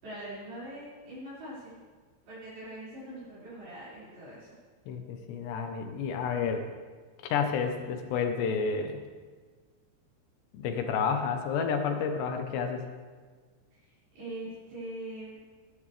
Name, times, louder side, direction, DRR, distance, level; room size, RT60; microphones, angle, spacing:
voice 1, 0.0-1.8 2.3-4.6 6.3-6.6 13.7-15.4, right 1 dB, 50° right, -11 dB, 7.0 m, -43 dB
voice 2, 4.9-6.6 7.2-9.0 10.5-12.8, left 6 dB, 75° left, 5 dB, 2.9 m, -30 dB
19.5 x 14.0 x 3.4 m, 1.5 s
omnidirectional pair, 5.6 m